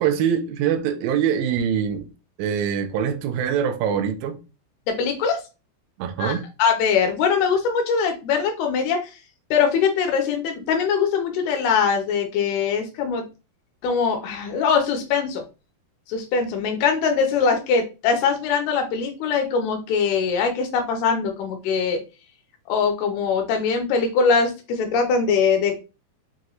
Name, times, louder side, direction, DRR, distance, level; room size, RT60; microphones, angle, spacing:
voice 1, 0.0-2.1 2.4-4.4 6.0-6.4, right 8 dB, 80° right, 2.2 m, -23 dB
voice 2, 4.9-5.4 6.2-9.1 9.5-13.2 13.8-15.4 16.1-22.0 22.7-25.8, left 6 dB, 80° left, 2.8 m, -22 dB
6.4 x 2.4 x 3.0 m
omnidirectional pair, 4.4 m